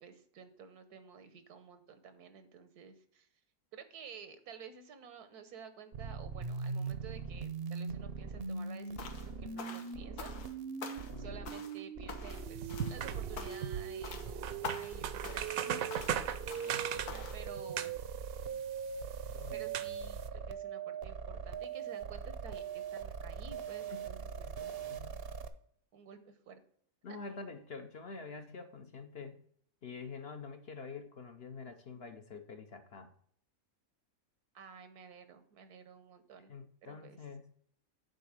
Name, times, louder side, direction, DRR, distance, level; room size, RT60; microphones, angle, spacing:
voice 1, 0.0-3.3 3.7-10.4 11.2-15.8 16.4-18.0 19.5-25.0 25.9-26.6 27.1-27.2 34.5-36.5 36.8-37.2, right 6 dB, 85° right, 10 dB, 1.5 m, -52 dB
sound 1, 5.9-25.5, right 6 dB, 50° right, 0.8 m, -41 dB
sound 2, 9.0-9.3 9.6-10.5 10.8-11.2 11.4-11.8 12.1-12.4 12.7-13.0 13.4-13.7 14.0-14.3 14.6-15.0 15.2-15.6 15.9-16.2 16.5-16.8 17.1-17.4, left 5 dB, 90° left, 1.6 m, -45 dB
voice 2, 11.1-11.5 15.7-16.1 19.3-19.8 23.9-24.0 24.4-25.3 27.0-29.4 29.8-33.1 36.5-37.5, left 4 dB, 50° left, 7 dB, 0.8 m, -47 dB
sound 3, 12.3-20.3, right 9 dB, 70° right, 1.0 m, -40 dB
9.1 x 4.1 x 6.4 m, 0.63 s
omnidirectional pair, 1.6 m